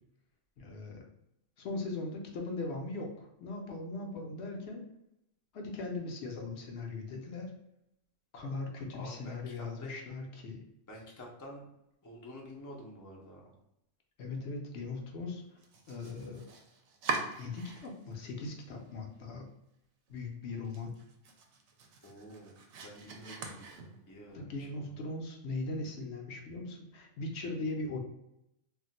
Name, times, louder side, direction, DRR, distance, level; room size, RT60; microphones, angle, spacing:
voice 1, 0.6-1.0 1.6-4.8 5.5-7.5 8.3-10.6 14.2-15.4 15.9-16.4 17.4-19.5 20.1-20.9 24.3-28.0, left 3 dB, 70° left, 2 dB, 0.8 m, -39 dB
voice 2, 8.9-9.9 10.9-11.7 12.0-13.4 22.0-22.5 22.8-23.8 24.1-25.0, left 1 dB, 30° left, -1 dB, 0.3 m, -49 dB
Domestic sounds home sounds, 15.6-18.1 18.5-19.2 19.6-19.7 20.1-20.2 20.6-24.3, right 4 dB, 70° right, 0.8 m, -42 dB
2.4 x 2.1 x 3.9 m, 0.83 s
omnidirectional pair, 1.3 m